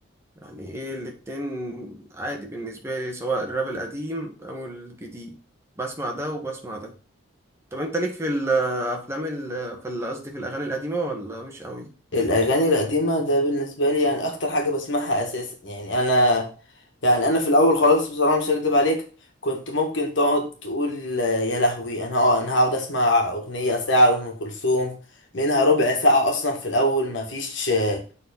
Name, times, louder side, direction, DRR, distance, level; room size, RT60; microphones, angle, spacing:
voice 1, 0.4-5.4 5.8-6.9 7.7-11.9, right 2 dB, 15° right, 1.5 m, -30 dB
voice 2, 12.1-16.5 17.0-19.0 19.4-24.9 25.3-28.0, left 1 dB, 65° left, 2.1 m, -22 dB
7.3 x 4.2 x 5.4 m
head